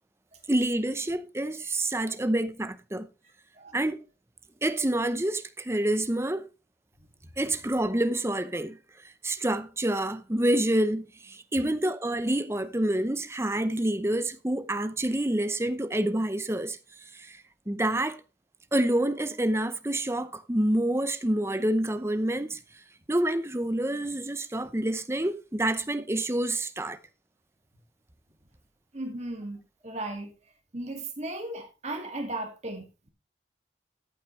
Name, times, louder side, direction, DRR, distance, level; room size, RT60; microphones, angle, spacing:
voice 1, 0.5-3.1 3.7-4.0 4.6-6.5 7.4-8.8 9.2-16.8 17.1-18.2 18.7-22.6 23.1-27.0, right 1 dB, 15° right, 0.7 m, -27 dB
voice 2, 28.9-30.3 30.7-32.8, right 2 dB, 35° right, 2.2 m, -36 dB
14.0 x 8.5 x 3.2 m
head